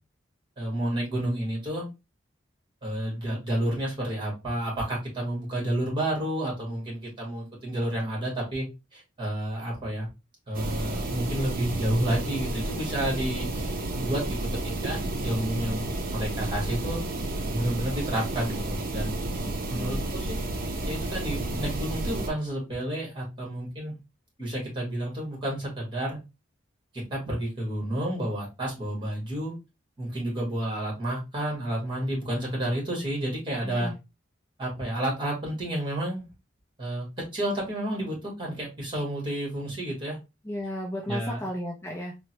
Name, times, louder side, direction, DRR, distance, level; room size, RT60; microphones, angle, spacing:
voice 1, 0.6-1.9 2.8-8.7 8.9-10.1 10.5-14.4 14.6-17.0 17.5-19.2 19.7-20.4 20.8-24.0 24.4-26.2 26.9-29.5 30.0-33.9 34.6-36.2 36.8-37.1 37.3-40.2 41.1-41.5, right 1 dB, 25° right, -2 dB, 1.5 m, -30 dB
sound 1, 10.5-22.3, right 2 dB, 50° right, 0.6 m, -31 dB
voice 2, 19.4-20.0 33.6-34.0 40.4-42.1, left 1 dB, 15° left, -1 dB, 0.5 m, -35 dB
3.6 x 2.1 x 2.8 m, 0.26 s
head